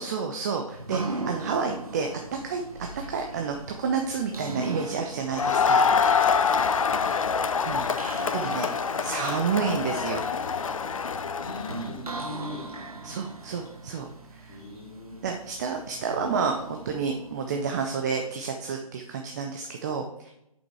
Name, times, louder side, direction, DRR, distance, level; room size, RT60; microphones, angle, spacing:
voice 1, 0.0-2.6 3.1-5.9 7.7-7.9 8.3-8.7 9.0-10.2 13.0-14.6 15.2-20.3, right 5 dB, 30° right, 4 dB, 0.6 m, -30 dB
sound 1, 0.7-18.5, right 3 dB, 80° right, 1.2 m, -40 dB
Crowd, 5.3-11.9, left 6 dB, 65° left, 0.5 m, -25 dB
voice 2, 6.9-7.4 7.7-8.1 11.3-13.6 14.5-15.3, left 1 dB, 40° left, -4 dB, 2.4 m, -41 dB
7.3 x 5.5 x 4.5 m, 0.84 s
figure-of-eight pair, 140°, 19 cm